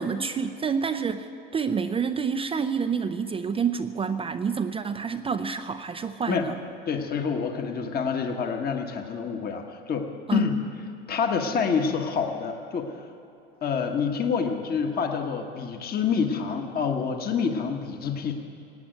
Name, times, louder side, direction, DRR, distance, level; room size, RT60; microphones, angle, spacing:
voice 1, 0.0-6.6 10.3-10.4, right 6 dB, 20° right, 8 dB, 0.5 m, -28 dB
voice 2, 6.9-10.5 11.1-13.1 13.6-18.3, left 6 dB, 30° left, 4 dB, 1.3 m, -27 dB
17.5 x 8.7 x 9.1 m, 2.6 s
hypercardioid pair, 100°, 29 cm